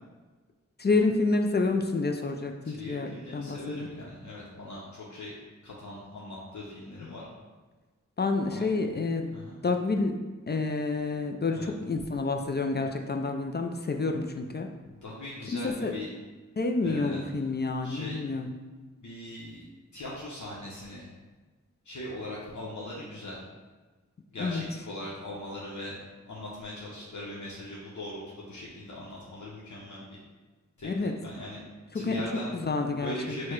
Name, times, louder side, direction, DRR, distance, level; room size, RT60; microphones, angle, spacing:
voice 1, 0.8-3.9 8.2-9.3 9.6-10.2 10.5-14.7 15.5-15.9 16.6-18.5 24.4-24.6 30.8-31.1 32.0-32.2 32.7-33.1 33.4-33.5, left 3 dB, 35° left, 4 dB, 0.4 m, -28 dB
voice 2, 2.6-5.3 5.6-7.3 8.5-8.7 9.3-9.6 11.5-11.7 14.8-16.1 16.8-17.4 17.8-18.2 19.0-21.0 21.8-23.4 24.3-26.0 26.2-30.2 30.8-31.6 31.9-32.6 33.0-33.5, left 1 dB, 75° left, -6 dB, 0.8 m, -40 dB
4.6 x 2.2 x 4.5 m, 1.3 s
wide cardioid pair, 55°, 30 cm